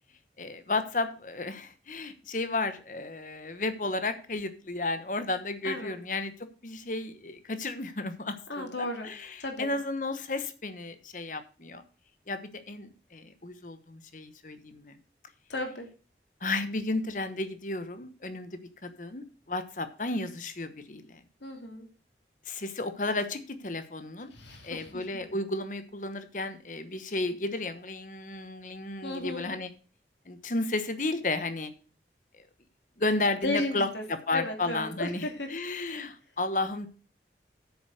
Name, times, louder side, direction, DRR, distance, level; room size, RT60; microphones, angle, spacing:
voice 1, 0.4-6.3 6.6-11.8 12.3-15.0 16.4-21.2 22.5-24.3 24.6-29.7 30.3-31.7 32.3-32.4 33.0-36.9, left 2 dB, 45° left, 11 dB, 1.2 m, -33 dB
voice 2, 8.5-9.1 9.4-9.7 15.5-15.9 21.4-21.9 24.3-24.9 29.0-29.5 33.4-34.0 34.3-35.5, left 2 dB, 90° left, 4 dB, 2.7 m, -34 dB
8.8 x 7.1 x 6.4 m, 0.36 s
head